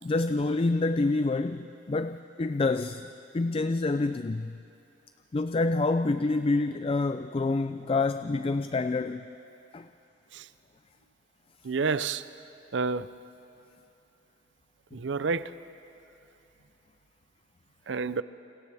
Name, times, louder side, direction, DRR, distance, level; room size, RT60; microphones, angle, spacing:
voice 1, 0.0-3.1 3.3-4.6 5.3-9.4 9.7-9.9, left 3 dB, 30° left, 0.4 m, -27 dB
voice 2, 11.6-12.2 12.7-13.1 14.9-15.5 17.9-18.2, right 4 dB, 75° right, 0.5 m, -29 dB
29.5 x 28.0 x 3.5 m
head